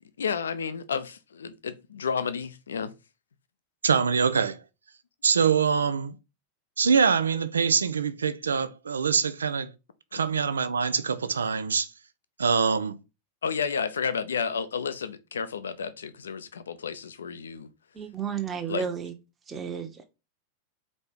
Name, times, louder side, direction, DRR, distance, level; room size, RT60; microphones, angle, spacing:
voice 1, 0.2-2.9 10.1-10.2 13.4-17.7 18.7-18.8, left 6 dB, 70° left, 0.7 m, -31 dB
voice 2, 3.8-4.6 5.2-6.1 6.8-9.7 10.1-11.9 12.4-13.0, right 6 dB, 70° right, 0.6 m, -24 dB
voice 3, 17.9-19.1 19.5-20.0, right 7 dB, 20° right, 1.1 m, -32 dB
4.4 x 4.2 x 5.2 m
figure-of-eight pair, 90°, 0 cm